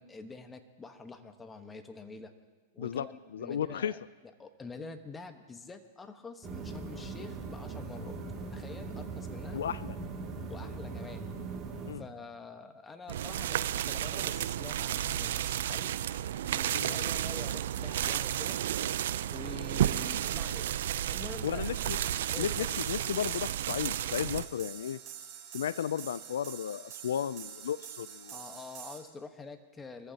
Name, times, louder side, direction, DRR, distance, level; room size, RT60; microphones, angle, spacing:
voice 1, 0.0-2.3 2.7-4.0 4.4-8.2 8.5-9.6 10.5-11.3 11.9-15.9 16.5-18.6 19.3-20.7 21.1-21.7 22.0-22.8 28.3-30.1, left 4 dB, 15° left, 8 dB, 1.2 m, -46 dB
voice 2, 2.8-3.9 9.5-9.9 11.9-12.0 16.7-16.9 21.4-22.0 22.4-25.0 25.5-28.4, left 9 dB, 85° left, 19 dB, 0.3 m, -34 dB
sound 1, 6.4-11.9, right 4 dB, 25° right, 2.5 m, -40 dB
sound 2, 13.1-24.5, right 11 dB, 75° right, 0.5 m, -32 dB
sound 3, 21.6-29.0, right 9 dB, 45° right, 3.5 m, -46 dB
24.5 x 15.0 x 2.9 m, 1.3 s
hypercardioid pair, 125°, 0 cm